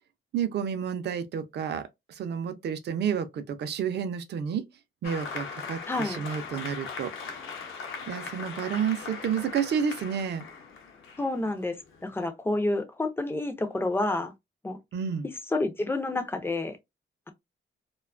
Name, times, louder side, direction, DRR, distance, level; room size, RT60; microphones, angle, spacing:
voice 1, 0.3-4.6 5.0-7.1 8.1-10.4 14.9-15.3, right 7 dB, 60° right, 0.4 m, -30 dB
Applause, 5.0-12.2, left 5 dB, 80° left, 0.7 m, -39 dB
voice 2, 5.9-6.2 11.2-11.8 12.0-14.3 14.6-14.8 15.5-16.8, left 2 dB, 10° left, 0.3 m, -29 dB
2.4 x 2.2 x 2.4 m
wide cardioid pair, 165°, 20 cm